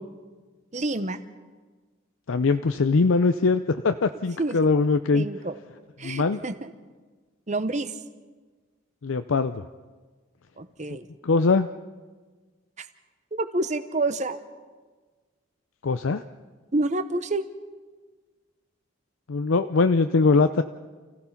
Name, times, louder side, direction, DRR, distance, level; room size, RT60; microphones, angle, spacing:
voice 1, 0.7-1.2 4.4-4.6 5.1-5.5 6.0-6.7 7.5-7.9 10.6-11.1 12.8-12.9 13.3-14.4 16.7-17.4, right 2 dB, 35° right, 11 dB, 0.9 m, -28 dB
voice 2, 2.3-5.3 6.0-6.4 9.0-9.5 11.2-11.7 15.8-16.2 19.3-20.6, left 4 dB, 80° left, 9 dB, 0.5 m, -21 dB
28.5 x 16.0 x 5.8 m, 1.4 s
head